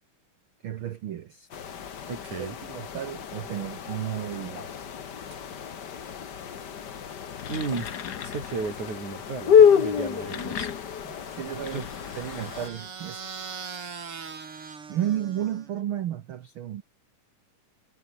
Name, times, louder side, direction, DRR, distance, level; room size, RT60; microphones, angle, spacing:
voice 1, 0.6-1.5 2.4-4.9 11.0-11.8 12.1-13.2 14.9-16.8, right 11 dB, 85° right, 1.1 m, -33 dB
sound 1, 1.5-12.7, left 7 dB, 45° left, 1.5 m, -27 dB
voice 2, 2.1-2.5 7.5-10.7 11.7-11.9, right 4 dB, 65° right, 6.5 m, -34 dB
sound 2, 7.2-8.8 9.9-13.0, left 8 dB, 75° left, 0.9 m, -39 dB
sound 3, 11.3-15.8, right 5 dB, 40° right, 3.7 m, -41 dB
omnidirectional pair, 3.8 m